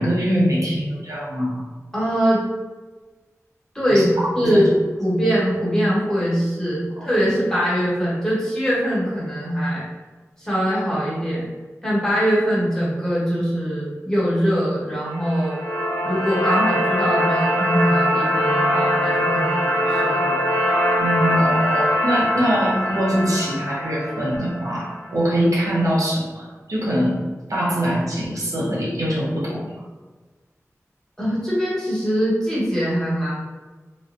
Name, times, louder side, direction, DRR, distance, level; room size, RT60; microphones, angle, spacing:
voice 1, 0.0-1.6 3.9-4.1 4.4-4.6 7.0-7.1 21.0-27.2 27.5-29.8, equal, 85° right, -5 dB, 0.8 m, -23 dB
voice 2, 1.9-2.4 3.7-4.1 4.3-9.8 10.4-11.5 11.8-15.6 16.0-20.5 31.2-33.3, equal, 10° left, -7 dB, 1.3 m, -22 dB
sound 1, 15.0-25.1, equal, 60° left, 0.6 m, -22 dB
3.0 x 2.5 x 2.6 m, 1.3 s
wide cardioid pair, 75°, 6 cm